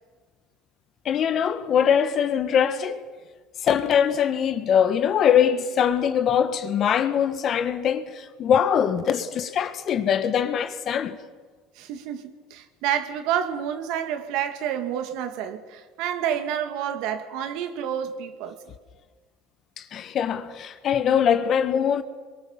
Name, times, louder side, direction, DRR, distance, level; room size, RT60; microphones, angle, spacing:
voice 1, 1.0-3.0 3.6-11.2 19.8-22.0, left 8 dB, 45° left, 1.6 m, -22 dB
voice 2, 11.8-18.6, right 9 dB, 70° right, 2.1 m, -29 dB
22.5 x 22.5 x 7.4 m
supercardioid pair, 105°, 0 cm